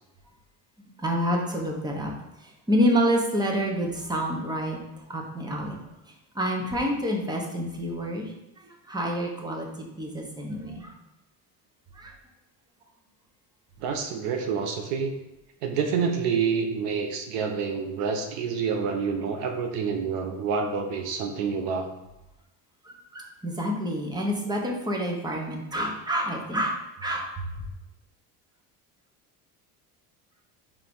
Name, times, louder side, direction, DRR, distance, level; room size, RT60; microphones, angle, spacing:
voice 1, 0.8-2.1 2.4-4.8 5.1-5.8 6.3-9.7 10.0-10.9 11.9-12.1 22.8-27.4, equal, 10° right, 0 dB, 1.1 m, -28 dB
voice 2, 13.8-15.1 15.6-21.9, right 6 dB, 85° right, 5 dB, 1.0 m, -28 dB
4.9 x 3.7 x 5.4 m, 0.95 s
cardioid pair, 120°, 41 cm